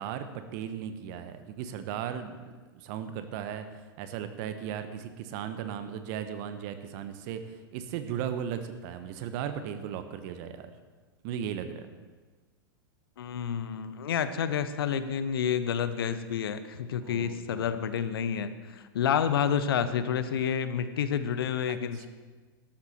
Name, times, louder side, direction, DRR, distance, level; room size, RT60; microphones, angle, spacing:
voice 1, 0.0-10.7 11.2-11.9 17.0-17.7 21.7-22.1, right 8 dB, 50° right, 10 dB, 1.2 m, -37 dB
voice 2, 13.2-22.1, left 8 dB, 70° left, 12 dB, 0.9 m, -29 dB
13.0 x 12.0 x 4.4 m, 1.3 s
hypercardioid pair, 100°, 13 cm